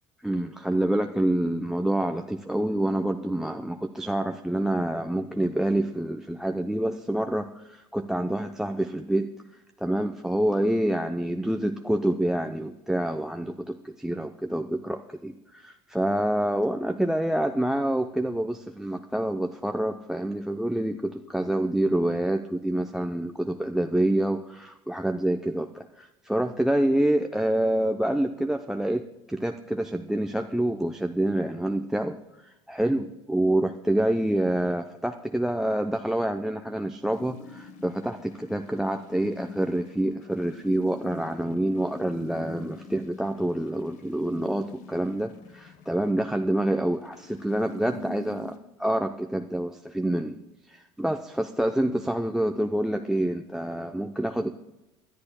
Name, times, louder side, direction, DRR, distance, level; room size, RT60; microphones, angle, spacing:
voice 1, 0.2-9.3 9.8-29.0 29.3-32.2 32.4-50.4 50.7-54.5, right 1 dB, 5° right, 7 dB, 0.5 m, -27 dB
sound 1, 37.1-48.6, left 3 dB, 55° left, 1.1 m, -46 dB
24.0 x 11.5 x 2.2 m, 0.96 s
hypercardioid pair, 85°, 15 cm